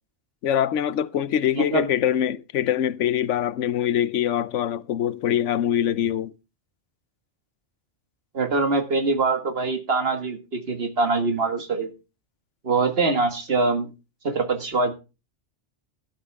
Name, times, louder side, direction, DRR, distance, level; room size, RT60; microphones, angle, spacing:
voice 1, 0.4-6.3, left 10 dB, 90° left, 1.1 m, -24 dB
voice 2, 1.6-1.9 8.3-11.9 12.6-13.9 14.2-14.9, right 3 dB, 55° right, 1.9 m, -23 dB
12.5 x 11.0 x 3.5 m
omnidirectional pair, 1.2 m